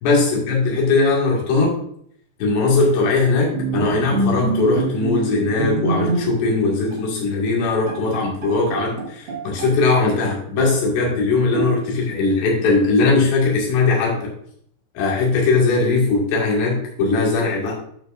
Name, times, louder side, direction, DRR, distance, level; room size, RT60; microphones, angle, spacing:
voice 1, 0.0-1.8 2.4-14.3 15.0-17.7, left 3 dB, 85° left, -4 dB, 4.3 m, -19 dB
Bowed string instrument, 3.5-6.6 6.9-7.1 7.5-7.6 7.9-9.8 10.1-10.9 11.5-12.1, right 3 dB, 50° right, 1.7 m, -26 dB
13.5 x 5.0 x 2.5 m, 0.66 s
omnidirectional pair, 4.8 m